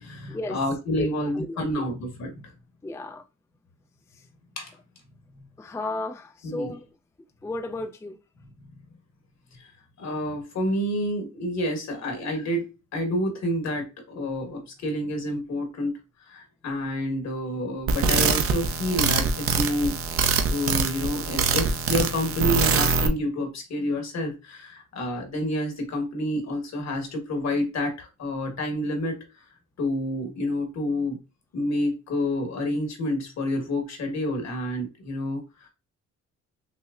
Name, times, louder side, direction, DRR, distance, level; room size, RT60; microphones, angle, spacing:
voice 1, 0.0-2.4 4.6-4.7 5.3-5.5 6.4-6.7 9.5-9.7 10.0-20.0 20.5-29.2 29.8-31.2 31.5-35.7, left 1 dB, 60° left, 1.5 m, -29 dB
voice 2, 1.0-1.8 2.8-3.2 4.1-4.2 5.6-6.9 7.4-8.2, left 2 dB, 10° left, 0.4 m, -34 dB
sound 1, 17.9-23.1, right 5 dB, 50° right, 0.7 m, -24 dB
5.7 x 2.0 x 2.5 m
cardioid pair, 90°, 30 cm